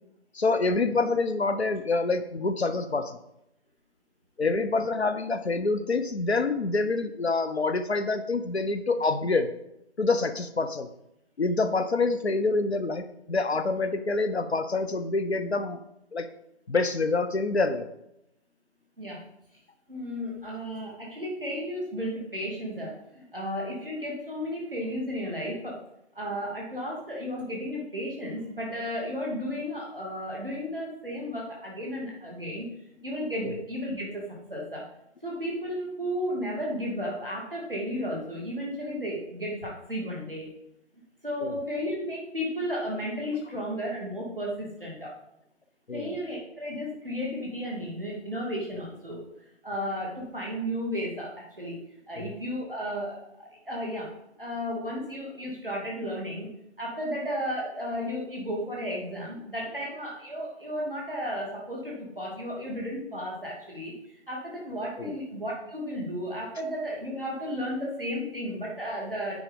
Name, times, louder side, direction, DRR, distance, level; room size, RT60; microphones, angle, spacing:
voice 1, 0.3-3.2 4.4-9.5 10.0-10.9 11.4-15.8 16.1-16.3 16.7-17.9 33.4-33.5 41.4-41.5 45.9-46.1 52.2-52.3 65.0-65.2, left 3 dB, 65° left, 10 dB, 0.9 m, -26 dB
voice 2, 19.0-19.3 19.9-25.8 26.1-32.7 33.0-34.8 35.2-40.5 41.2-45.1 45.9-49.2 49.6-51.8 52.1-54.1 54.4-56.5 56.8-69.4, equal, 5° left, -18 dB, 1.1 m, -33 dB
9.4 x 5.2 x 5.2 m, 0.82 s
figure-of-eight pair, 170°, 35 cm